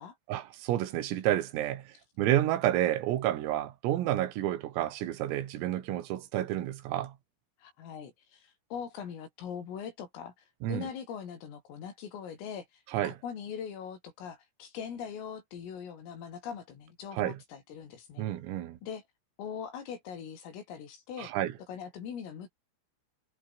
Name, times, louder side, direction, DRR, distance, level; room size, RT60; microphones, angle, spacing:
voice 1, 0.3-7.1 10.6-10.9 12.9-13.2 17.1-17.4 18.2-18.8 21.2-21.5, right 13 dB, 90° right, 4.7 m, -30 dB
voice 2, 7.6-18.3 18.8-19.0 19.4-21.3 21.7-22.5, left 7 dB, 80° left, 6.8 m, -41 dB
omnidirectional pair, 5.9 m